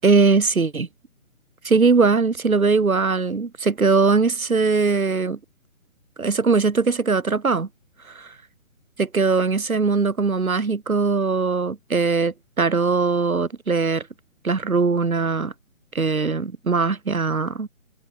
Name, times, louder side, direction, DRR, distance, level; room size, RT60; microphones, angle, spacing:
voice 1, 0.0-0.9 1.6-5.4 6.2-7.7 9.0-14.0 14.4-15.5 15.9-17.7, right 4 dB, 85° right, 7.5 m, -20 dB
hypercardioid pair, 170°, 41 cm